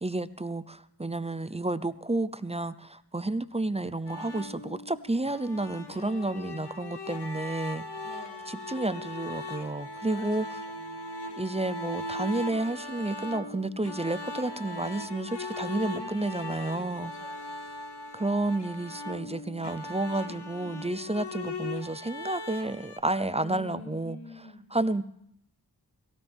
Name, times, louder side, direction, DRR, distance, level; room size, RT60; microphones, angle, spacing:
voice 1, 0.0-7.9 8.5-10.6 11.4-17.1 18.1-25.0, right 2 dB, 15° right, 15 dB, 0.5 m, -31 dB
cello high noodling, 4.1-23.0, left 2 dB, 80° left, 1.0 m, -39 dB
voice 2, 5.9-6.3 8.0-8.5 10.1-10.3 10.7-11.0 15.9-16.4 17.0-17.6 20.1-20.3 23.4-24.7, left 2 dB, 60° left, -4 dB, 3.7 m, -47 dB
17.5 x 16.5 x 3.5 m, 0.74 s
wide cardioid pair, 45°, 40 cm